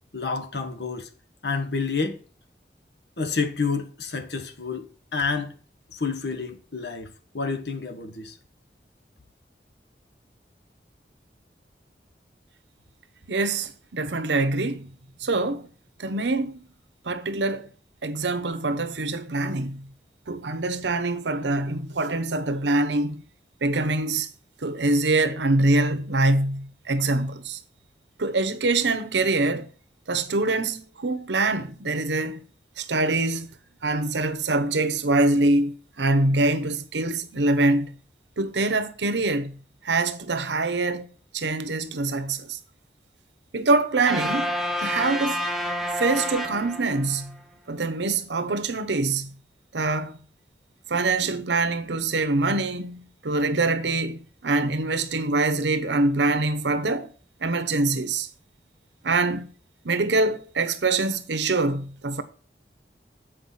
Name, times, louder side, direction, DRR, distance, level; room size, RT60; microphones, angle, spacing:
voice 1, 0.1-1.1 1.4-2.2 3.2-4.9 5.1-5.5 5.9-7.1 7.3-8.4, left 4 dB, 75° left, 1.3 m, -29 dB
voice 2, 13.3-14.9 15.2-15.7 16.0-16.6 17.1-17.7 18.0-19.9 20.3-23.2 23.6-24.3 24.6-27.6 28.2-29.7 30.1-32.4 32.8-33.5 33.8-37.9 38.4-39.5 39.8-41.1 41.3-42.6 43.5-45.4 46.0-47.3 47.7-49.3 49.7-50.2 50.9-57.1 57.4-58.3 59.0-59.5 59.8-62.2, right 2 dB, 90° right, 0.9 m, -24 dB
Truck Horn Long Length, 44.1-47.3, equal, ahead, 0.8 m, -29 dB
8.0 x 4.9 x 5.6 m
head